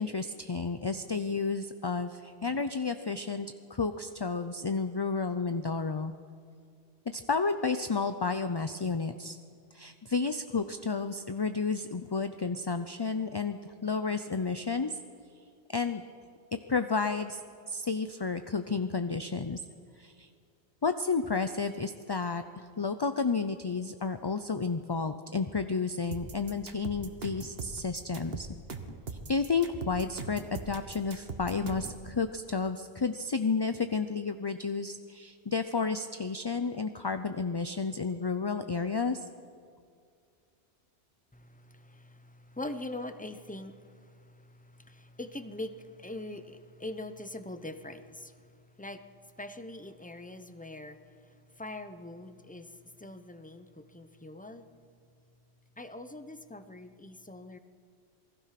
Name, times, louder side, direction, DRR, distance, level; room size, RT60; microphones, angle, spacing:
voice 1, 0.0-6.1 7.1-9.4 9.7-15.0 15.7-16.0 16.7-17.4 17.7-19.6 20.0-20.3 20.8-28.5 29.1-39.3, left 4 dB, 30° left, 9 dB, 0.5 m, -31 dB
sound 1, 26.1-32.0, right 4 dB, 60° right, 1.6 m, -40 dB
voice 2, 41.3-48.5 48.8-49.0 49.4-51.0 51.5-54.7 55.8-57.6, left 1 dB, 10° left, 9 dB, 0.9 m, -43 dB
27.5 x 20.0 x 5.9 m, 2.3 s
omnidirectional pair, 1.1 m